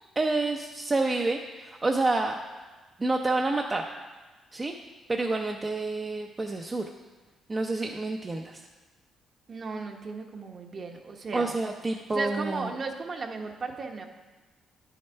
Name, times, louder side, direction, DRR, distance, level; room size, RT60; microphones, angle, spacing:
voice 1, 0.2-2.4 3.0-3.8 4.5-4.7 5.1-6.8 7.5-8.6 11.3-12.7, right 2 dB, 25° right, 2 dB, 0.6 m, -28 dB
voice 2, 9.5-11.5 12.1-14.0, right 4 dB, 45° right, 3 dB, 1.1 m, -35 dB
10.0 x 6.5 x 4.5 m, 1.2 s
cardioid pair, 90°, 0 cm